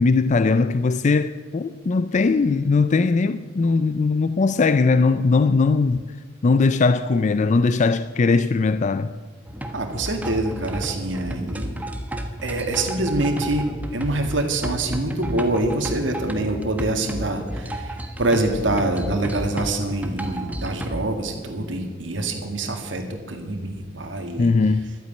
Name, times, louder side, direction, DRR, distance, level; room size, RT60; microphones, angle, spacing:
voice 1, 0.0-6.1 6.4-9.1 24.4-25.0, left 4 dB, 40° left, 0.4 m, -19 dB
sound 1, 9.5-21.1, equal, 10° right, 1.1 m, -32 dB
voice 2, 9.7-11.8 12.4-13.7 13.9-24.5, right 2 dB, 70° right, 2.0 m, -25 dB
12.0 x 9.5 x 9.3 m
head